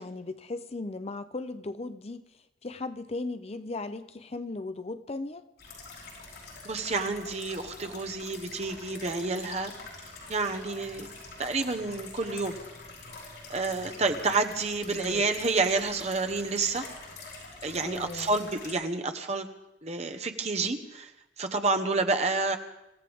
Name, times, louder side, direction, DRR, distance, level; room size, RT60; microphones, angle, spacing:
voice 1, 0.0-2.2 2.6-5.5 14.9-15.3 17.8-18.4, left 2 dB, 35° left, 11 dB, 0.6 m, -37 dB
sound 1, 5.6-18.7, left 3 dB, 75° left, 7.8 m, -45 dB
voice 2, 6.6-9.7 10.3-11.1 11.4-12.6 13.5-16.9 17.6-19.5 19.8-21.1 21.4-22.6, right 3 dB, 35° right, 5 dB, 1.1 m, -29 dB
27.0 x 15.0 x 3.6 m, 0.91 s
head